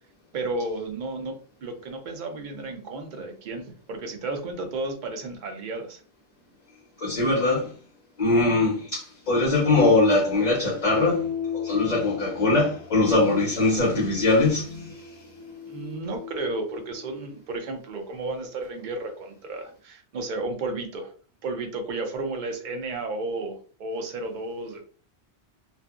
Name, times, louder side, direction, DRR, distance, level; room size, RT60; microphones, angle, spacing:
voice 1, 0.3-6.0 15.7-21.1 21.4-24.8, right 2 dB, 55° right, 0.7 m, -33 dB
voice 2, 7.0-7.7 8.2-15.0, left 2 dB, 45° left, 0.8 m, -22 dB
sound 1, 10.8-17.3, left 6 dB, 15° left, 0.6 m, -37 dB
2.7 x 2.4 x 2.3 m
omnidirectional pair, 1.1 m